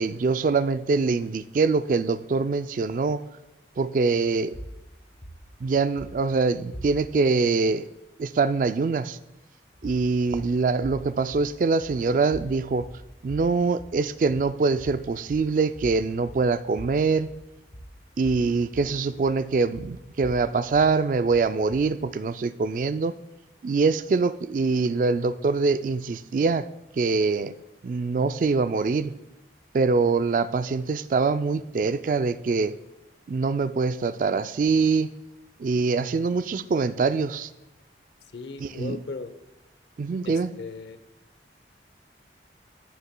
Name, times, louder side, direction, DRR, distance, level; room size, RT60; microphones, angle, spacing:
voice 1, 0.0-3.3 3.8-4.6 5.6-7.9 8.2-9.2 9.8-12.8 13.2-17.3 18.2-23.1 23.6-26.7 27.0-27.5 27.8-29.1 29.7-32.8 33.3-35.2 35.6-37.5 38.6-39.0 40.0-40.5, right 4 dB, 45° right, 0.3 m, -24 dB
sound 1, 4.5-7.3 9.7-22.1, equal, 45° left, 1.3 m, -44 dB
voice 2, 38.3-39.4 40.2-41.0, left 4 dB, 80° left, 0.6 m, -37 dB
18.5 x 6.8 x 2.2 m
head